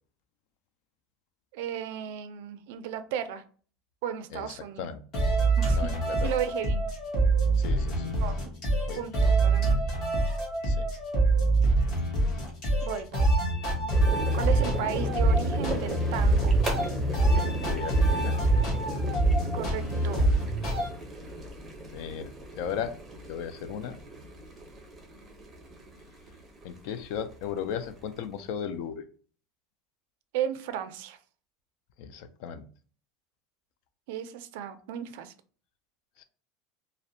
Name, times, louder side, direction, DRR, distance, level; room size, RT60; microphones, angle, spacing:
voice 1, 1.5-3.4 4.0-4.9 5.6-5.9 6.2-6.8 8.2-8.5 9.0-9.8 12.8-13.3 14.3-16.6 19.5-20.3 30.3-31.2 34.1-35.3, right 9 dB, 75° right, 10 dB, 0.3 m, -34 dB
voice 2, 4.3-5.0 5.7-6.3 7.6-8.2 8.9-9.0 10.6-10.9 17.7-18.4 21.9-22.9 23.3-24.0 26.6-29.0 32.0-32.6 36.2-36.3, left 8 dB, 60° left, 11 dB, 0.3 m, -36 dB
sound 1, 5.1-20.9, right 2 dB, 40° left, 1.0 m, -25 dB
sound 2, 13.9-28.4, right 1 dB, 15° right, 0.6 m, -38 dB
2.5 x 2.0 x 2.6 m, 0.41 s
cardioid pair, 160°, 0 cm